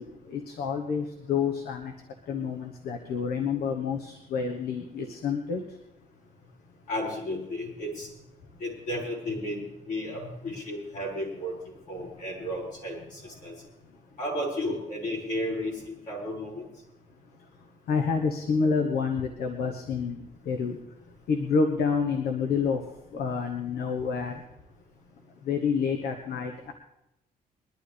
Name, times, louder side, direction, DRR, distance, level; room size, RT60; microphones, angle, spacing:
voice 1, 0.3-1.9 2.3-5.6 17.9-20.8 21.3-22.8 23.1-24.4 25.5-26.7, left 5 dB, 85° left, 4 dB, 1.2 m, -28 dB
voice 2, 6.9-8.1 8.6-11.5 11.9-13.5 14.2-16.6, left 1 dB, 55° left, -4 dB, 6.8 m, -33 dB
22.0 x 12.0 x 3.5 m, 0.86 s
cardioid pair, 135°, 16 cm